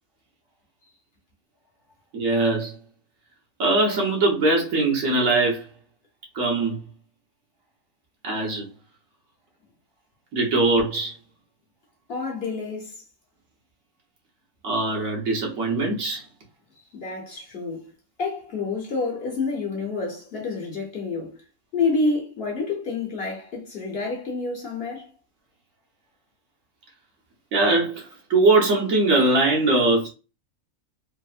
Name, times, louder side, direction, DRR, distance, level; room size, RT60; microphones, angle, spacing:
voice 1, 2.1-2.7 3.6-5.7 6.3-6.8 8.2-8.6 10.3-11.1 14.6-16.2 27.5-30.1, right 2 dB, 80° right, 1.4 m, -21 dB
voice 2, 12.1-13.0 16.9-17.9 18.2-21.4 21.7-25.1, left 3 dB, 50° left, 1.0 m, -28 dB
3.4 x 2.0 x 2.4 m
omnidirectional pair, 1.4 m